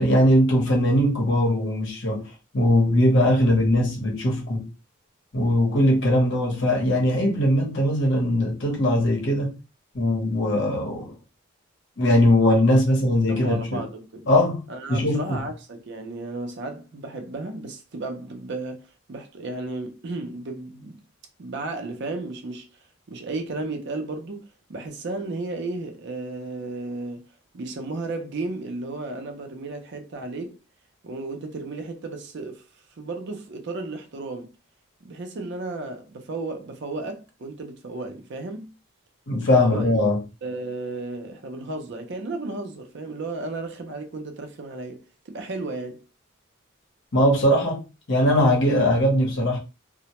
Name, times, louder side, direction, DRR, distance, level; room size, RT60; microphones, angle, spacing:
voice 1, 0.0-2.3 2.5-4.7 5.3-9.5 9.9-11.1 12.0-13.8 14.3-14.6 14.9-15.4 39.3-40.2 47.1-49.6, left 1 dB, 55° left, 0.8 m, -20 dB
voice 2, 13.3-14.3 14.7-21.0 21.4-22.7 23.1-27.2 27.5-30.6 31.0-32.7 33.0-34.5 35.0-38.7 39.5-40.0 40.4-46.0, right 2 dB, 55° right, 0.5 m, -34 dB
2.1 x 2.1 x 2.8 m
head